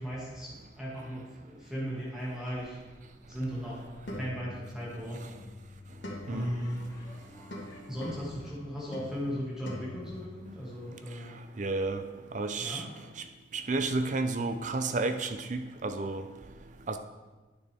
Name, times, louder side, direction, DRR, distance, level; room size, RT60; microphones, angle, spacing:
voice 1, 0.0-2.8 3.3-3.9 4.2-5.4 6.3-6.9 7.9-11.4 12.6-12.9, equal, 5° right, -7 dB, 2.0 m, -37 dB
sound 1, 2.5-10.6, left 1 dB, 85° left, 1.9 m, -46 dB
sound 2, 6.3-9.9, left 1 dB, 20° left, 1.3 m, -56 dB
voice 2, 11.6-12.0 12.3-12.8 13.5-16.2 16.9-17.0, right 3 dB, 45° right, 8 dB, 0.6 m, -31 dB
9.9 x 6.6 x 3.5 m, 1.3 s
head